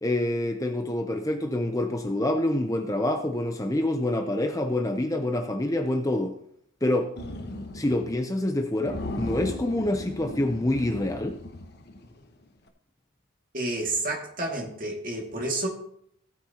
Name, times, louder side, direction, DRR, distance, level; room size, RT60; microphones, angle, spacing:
voice 1, 0.0-6.3 6.8-7.1 7.7-11.4, left 1 dB, 15° left, 5 dB, 0.6 m, -26 dB
sound 1, 7.2-8.2 8.4-8.6 8.9-12.2, left 1 dB, 50° left, 1.1 m, -37 dB
voice 2, 13.5-15.7, right 2 dB, 40° right, 0 dB, 2.2 m, -30 dB
16.0 x 9.3 x 2.9 m, 0.70 s
head